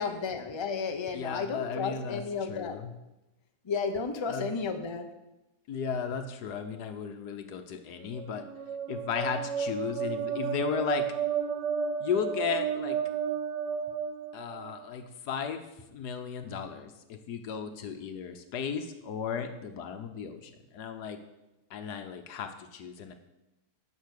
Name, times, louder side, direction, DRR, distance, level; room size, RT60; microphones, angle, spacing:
voice 1, 0.0-2.8 3.6-5.1, left 5 dB, 25° left, 6 dB, 0.6 m, -33 dB
voice 2, 1.1-2.9 4.3-4.5 5.7-8.5 8.9-11.1 12.0-13.0 14.3-21.2 21.7-23.1, left 7 dB, 75° left, 7 dB, 1.4 m, -35 dB
sound 1, 8.0-14.9, right 7 dB, 85° right, 1.4 m, -32 dB
10.5 x 6.6 x 6.4 m, 0.96 s
omnidirectional pair, 1.8 m